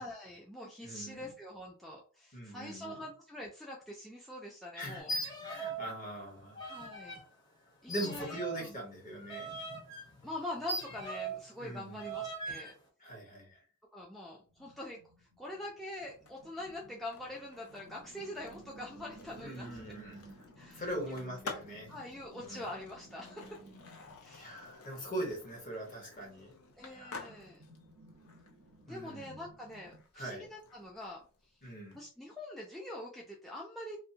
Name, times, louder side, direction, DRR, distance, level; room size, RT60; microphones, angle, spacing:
voice 1, 0.0-5.1 6.7-7.2 7.8-8.8 10.2-12.7 13.9-19.8 20.6-21.2 21.9-23.6 24.2-24.6 26.8-27.6 28.9-31.2 31.9-34.0, left 1 dB, ahead, -4 dB, 0.3 m, -44 dB
voice 2, 0.8-1.3 2.3-3.0 4.8-6.7 7.9-9.5 11.6-12.2 13.0-13.6 19.4-20.3 20.7-22.0 22.4-22.6 24.3-26.5 26.9-27.3 28.9-29.3 30.1-30.5 31.6-32.0, right 1 dB, 40° left, -1 dB, 1.1 m, -42 dB
sound 1, 5.0-5.9 6.2-7.2 7.9-11.5 12.0-12.7, right 2 dB, 20° left, 0.7 m, -40 dB
sound 2, 14.5-24.7 25.6-30.0, right 2 dB, 80° right, 0.6 m, -57 dB
Skateboard, 16.1-32.0, left 4 dB, 75° left, 0.5 m, -52 dB
2.6 x 2.1 x 2.6 m, 0.38 s
head